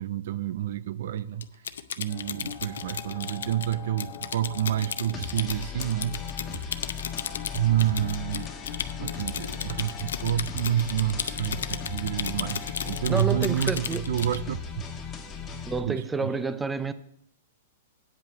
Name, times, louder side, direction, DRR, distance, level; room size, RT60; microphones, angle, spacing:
voice 1, 0.0-1.5 2.0-6.9 7.5-8.5 9.0-14.8 15.8-16.3, right 11 dB, 65° right, 0.4 m, -29 dB
Typing, 1.4-14.4, left 7 dB, 85° left, 0.5 m, -35 dB
sound 1, 2.1-13.5, left 8 dB, 55° left, 1.1 m, -45 dB
sound 2, 5.1-15.8, left 6 dB, 20° left, 1.2 m, -37 dB
voice 2, 13.1-14.1 15.7-16.9, right 3 dB, 10° right, 0.5 m, -29 dB
9.2 x 5.4 x 7.0 m
hypercardioid pair, 145°, 0 cm